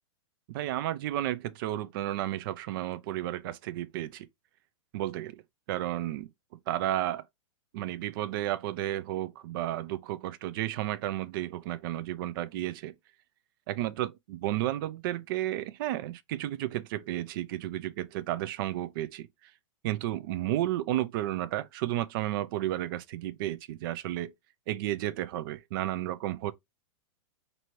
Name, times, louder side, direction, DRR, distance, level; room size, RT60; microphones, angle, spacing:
voice 1, 0.5-4.3 4.9-5.4 5.7-6.3 6.7-7.2 7.7-12.9 13.7-19.3 19.8-24.3 24.7-26.5, right 14 dB, 40° right, 0.4 m, -32 dB
4.4 x 2.6 x 3.0 m
hypercardioid pair, 155°, 17 cm